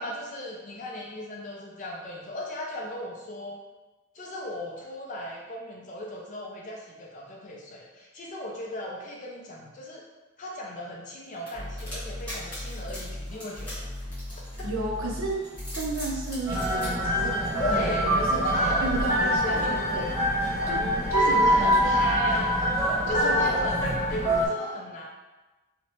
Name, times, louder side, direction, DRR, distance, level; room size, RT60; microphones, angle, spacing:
voice 1, 0.0-3.6 4.1-10.0 10.4-13.9 14.3-14.7 17.6-18.1 18.4-19.0 19.4-19.8 21.1-22.5 23.1-25.0, left 1 dB, 35° left, -2 dB, 0.4 m, -36 dB
sound 1, 11.5-14.9 15.4-16.9, equal, 10° left, 1.0 m, -41 dB
sound 2, 11.5-19.2, left 1 dB, 85° right, 0.9 m, -38 dB
voice 2, 14.6-15.4 15.7-18.4 18.8-20.1 20.7-22.3 23.2-23.4, right 2 dB, 70° right, -1 dB, 0.5 m, -33 dB
sound 3, 16.5-24.5, equal, 10° right, 0.5 m, -24 dB
2.8 x 2.1 x 2.9 m, 1.2 s
head